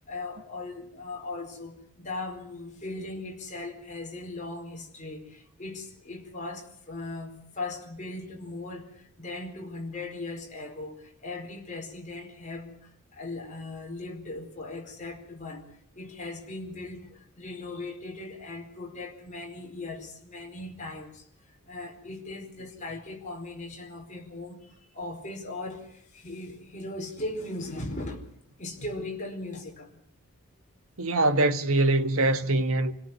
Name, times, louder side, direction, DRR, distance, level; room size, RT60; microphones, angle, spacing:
voice 1, 0.0-15.6 15.9-21.2 21.7-28.3 28.6-30.0, left 2 dB, 35° left, 4.7 m, -38 dB
voice 2, 31.0-32.9, right 2 dB, 70° right, 1.6 m, -23 dB
27.5 x 18.0 x 6.2 m
head